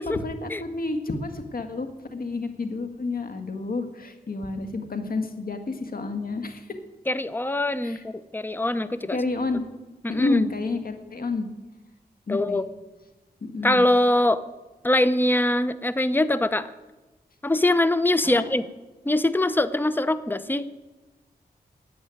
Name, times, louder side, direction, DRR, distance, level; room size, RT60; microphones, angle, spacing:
voice 1, 0.0-6.8 7.8-8.0 9.1-9.6 10.1-11.5 12.3-12.6 13.4-13.8 18.3-18.5, left 3 dB, 60° left, 7 dB, 1.7 m, -30 dB
voice 2, 7.1-9.2 10.0-10.5 12.3-12.6 13.6-14.4 14.8-16.7 17.4-18.6 19.1-20.6, left 1 dB, 10° left, 14 dB, 0.7 m, -23 dB
10.5 x 8.7 x 9.3 m, 1.1 s
cardioid pair, 60°, 17 cm